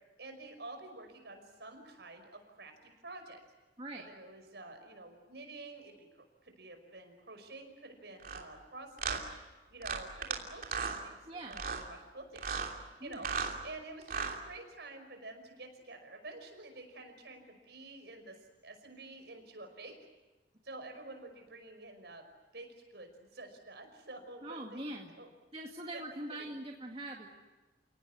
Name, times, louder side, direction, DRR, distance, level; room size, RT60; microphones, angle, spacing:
voice 1, 0.2-3.4 3.9-5.9 6.4-9.3 9.7-12.4 13.0-13.3 13.6-18.4 18.6-20.0 20.6-22.2 22.5-24.8 25.2-25.3 25.9-26.5, right 2 dB, 65° right, 5 dB, 5.5 m, -49 dB
sound 1, 8.2-8.4 9.0-9.2 9.8-10.4 10.6-11.0 11.5-11.8 12.4-12.7 13.1-13.6 14.0-14.4, right 5 dB, 50° right, 3.0 m, -35 dB
voice 2, 11.3-11.6 13.0-13.2 24.4-25.1 25.5-27.3, right 1 dB, 30° right, 0 dB, 2.1 m, -42 dB
29.5 x 18.5 x 9.6 m, 1.2 s
head